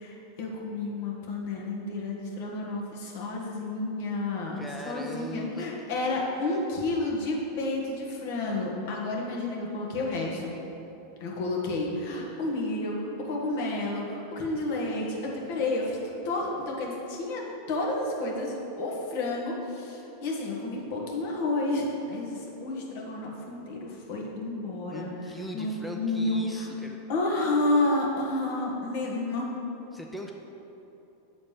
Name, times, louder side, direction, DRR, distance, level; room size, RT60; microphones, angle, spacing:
voice 1, 0.0-10.5 11.2-16.0 16.2-25.1 25.5-26.7 27.1-29.5, left 2 dB, 60° left, -2 dB, 1.5 m, -30 dB
voice 2, 4.6-6.3 6.5-6.7 24.9-27.0 29.9-30.3, equal, ahead, 0 dB, 0.6 m, -40 dB
7.4 x 4.0 x 5.0 m, 3.0 s
hypercardioid pair, 95°, 0 cm